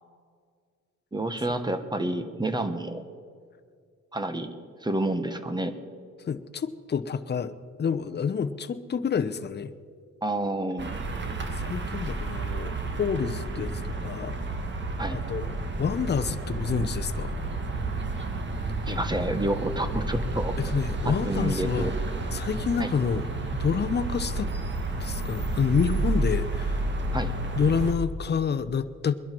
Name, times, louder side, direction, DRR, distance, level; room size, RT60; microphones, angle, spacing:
voice 1, 1.1-3.0 4.1-4.5 4.8-5.8 10.2-10.9 15.0-15.2 18.9-20.6 21.0-21.9 22.8-22.9 27.1-27.3, right 1 dB, 15° right, 9 dB, 1.2 m, -29 dB
voice 2, 6.3-7.5 7.8-9.7 11.6-14.4 15.1-17.3 20.6-21.9 22.3-23.2 23.6-24.5 25.0-26.9 27.5-29.1, left 6 dB, 35° left, 11 dB, 0.8 m, -28 dB
sound 1, 10.8-27.9, right 2 dB, 40° right, 1.7 m, -31 dB
22.0 x 11.0 x 4.6 m, 2.1 s
cardioid pair, 90°, 30 cm